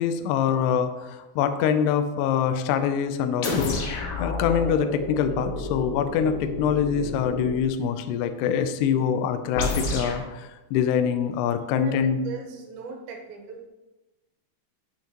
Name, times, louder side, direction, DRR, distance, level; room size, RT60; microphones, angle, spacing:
voice 1, 0.0-12.2, left 8 dB, 90° left, 8 dB, 2.3 m, -25 dB
sound 1, 3.4-7.7 9.5-10.3, left 2 dB, 70° left, 2.3 m, -30 dB
voice 2, 11.7-13.7, right 6 dB, 80° right, 1 dB, 3.2 m, -38 dB
9.0 x 7.2 x 3.0 m, 1.1 s
omnidirectional pair, 5.4 m